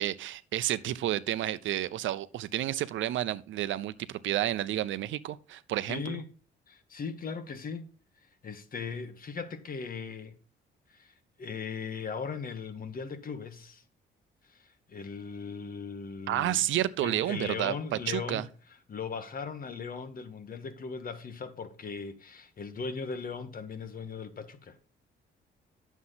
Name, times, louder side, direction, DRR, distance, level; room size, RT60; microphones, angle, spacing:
voice 1, 0.0-6.2 16.3-17.7 18.1-18.5, right 13 dB, 75° right, 0.6 m, -30 dB
voice 2, 5.9-6.3 6.7-7.9 8.4-10.4 10.9-11.1 11.4-13.8 14.4-16.6 17.0-18.5 18.9-24.8, left 5 dB, 45° left, 1.3 m, -38 dB
9.6 x 7.2 x 4.0 m
cardioid pair, 90°, 20 cm